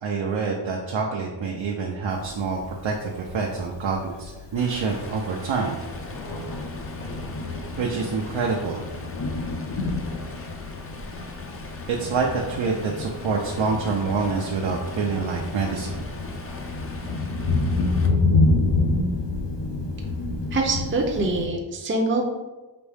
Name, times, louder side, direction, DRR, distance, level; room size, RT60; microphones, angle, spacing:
voice 1, 0.0-5.8 7.8-8.8 11.9-16.0, right 4 dB, 75° right, -1 dB, 0.7 m, -26 dB
Thunder, 2.1-21.5, left 3 dB, 65° left, 0.7 m, -28 dB
Stream, 4.6-18.1, left 3 dB, 30° left, 0.5 m, -42 dB
voice 2, 20.5-22.2, right 2 dB, 25° right, 1 dB, 0.6 m, -24 dB
5.1 x 2.7 x 3.4 m, 1.2 s
cardioid pair, 60°, 46 cm